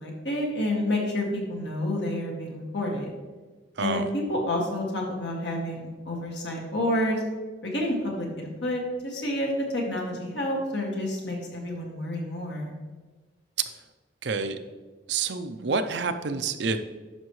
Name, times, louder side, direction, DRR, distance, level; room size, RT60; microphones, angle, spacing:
voice 1, 0.0-3.1 3.8-7.2 7.6-12.7, left 1 dB, 70° left, -1 dB, 2.0 m, -29 dB
voice 2, 14.2-14.6 15.1-16.8, right 4 dB, 70° right, 9 dB, 0.6 m, -28 dB
10.5 x 6.0 x 3.2 m, 1.3 s
head